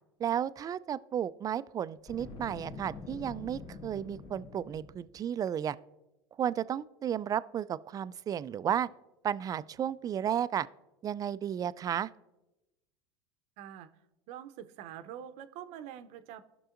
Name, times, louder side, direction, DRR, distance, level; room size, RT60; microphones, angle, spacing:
voice 1, 0.2-5.8 6.4-8.9 9.2-10.7 11.0-12.1, right 9 dB, 25° right, 17 dB, 0.3 m, -33 dB
Boom, 2.0-5.1, left 3 dB, 35° left, 1.7 m, -45 dB
voice 2, 13.6-13.9 14.3-16.4, right 10 dB, 60° right, 11 dB, 0.7 m, -45 dB
17.0 x 6.1 x 2.5 m, 0.98 s
hypercardioid pair, 85°, 13 cm